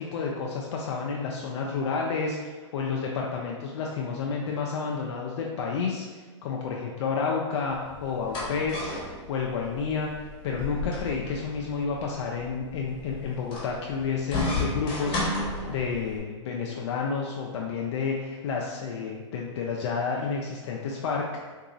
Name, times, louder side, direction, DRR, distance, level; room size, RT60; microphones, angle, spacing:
voice 1, 0.0-8.9 9.3-10.1 10.4-21.2, left 5 dB, 65° left, -1 dB, 0.4 m, -30 dB
sound 1, 7.7-16.2, left 2 dB, 30° left, 1.1 m, -34 dB
3.9 x 2.7 x 2.5 m, 1.4 s
hypercardioid pair, 130°, 16 cm